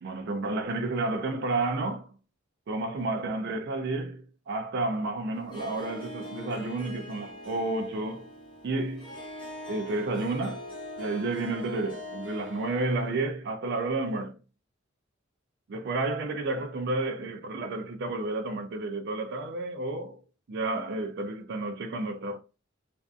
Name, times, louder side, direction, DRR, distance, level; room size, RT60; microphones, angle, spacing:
voice 1, 0.0-2.1 2.7-8.3 8.6-9.1 9.7-10.6 11.0-14.4 15.7-20.2 20.5-22.4, right 2 dB, 55° right, 0.4 m, -31 dB
Harp, 5.3-13.2, left 1 dB, 25° left, 0.8 m, -42 dB
2.5 x 2.4 x 2.3 m
head